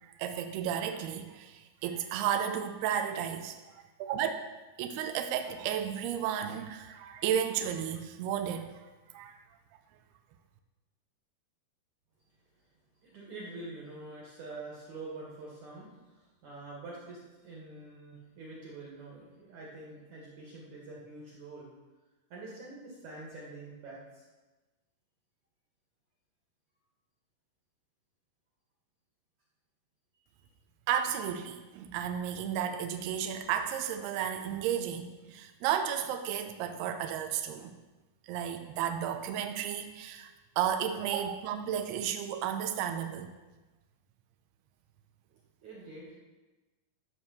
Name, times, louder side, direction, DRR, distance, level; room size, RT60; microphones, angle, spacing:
voice 1, 0.0-4.4 4.8-8.8 9.1-9.4 30.9-37.7 38.2-40.3 40.6-43.3, right 9 dB, 85° right, 6 dB, 2.3 m, -33 dB
voice 2, 13.0-17.2 17.4-21.7 22.3-24.2 45.6-46.2, right 2 dB, 50° right, -4 dB, 2.5 m, -46 dB
13.0 x 4.7 x 6.9 m, 1.2 s
omnidirectional pair, 5.5 m